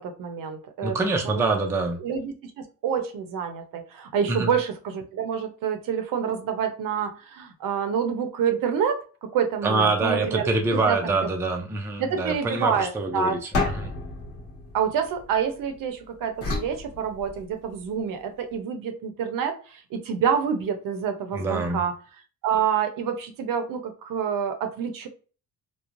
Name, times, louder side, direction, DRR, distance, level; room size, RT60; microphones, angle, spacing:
voice 1, 0.0-1.6 2.0-11.1 12.0-13.4 14.7-21.9 22.4-25.1, right 7 dB, 65° right, 7 dB, 0.6 m, -27 dB
voice 2, 0.8-2.0 4.3-4.5 9.6-13.9 21.3-21.8, right 3 dB, 10° right, 3 dB, 0.3 m, -25 dB
sound 1, 13.5-15.7 16.4-17.8, left 3 dB, 40° left, 1.0 m, -31 dB
3.0 x 2.0 x 2.5 m, 0.37 s
cardioid pair, 120°, 37 cm